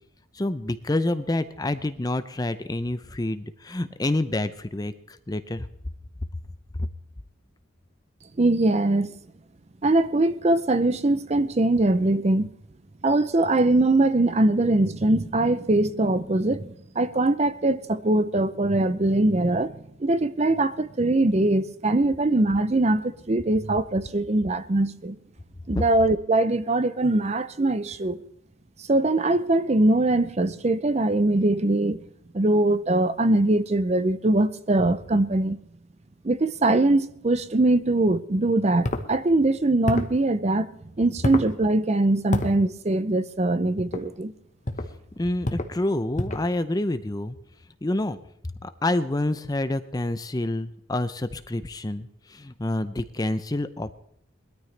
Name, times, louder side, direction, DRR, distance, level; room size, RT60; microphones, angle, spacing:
voice 1, 0.3-5.7 25.7-25.8 45.2-47.4 47.8-48.2 48.6-53.9, left 1 dB, 20° left, 0.5 m, -28 dB
voice 2, 8.4-9.1 9.8-12.5 13.0-25.2 25.7-28.2 28.9-32.0 32.3-35.6 36.2-40.7 41.0-44.3, right 2 dB, 30° right, 0.5 m, -22 dB
sound 1, 38.8-39.1 39.8-40.2 41.2-41.5 42.3-42.5 43.8-44.0 44.6-44.9 45.4-45.7 46.2-46.5, left 1 dB, 35° left, 1.1 m, -27 dB
21.0 x 13.0 x 3.3 m
head